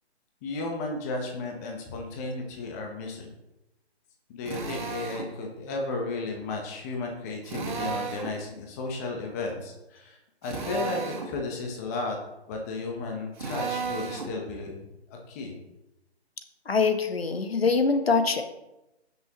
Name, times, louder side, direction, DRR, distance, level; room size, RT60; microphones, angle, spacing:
voice 1, 0.4-3.3 4.3-12.2 12.5-15.6, left 3 dB, 15° left, 1 dB, 0.9 m, -34 dB
Drill, 4.5-5.3 7.4-8.4 10.4-11.3 13.4-14.3, right 5 dB, 45° right, 2.0 m, -33 dB
voice 2, 16.7-18.4, left 4 dB, 65° left, 8 dB, 1.3 m, -23 dB
16.0 x 6.2 x 3.0 m, 0.95 s
figure-of-eight pair, 145°, 33 cm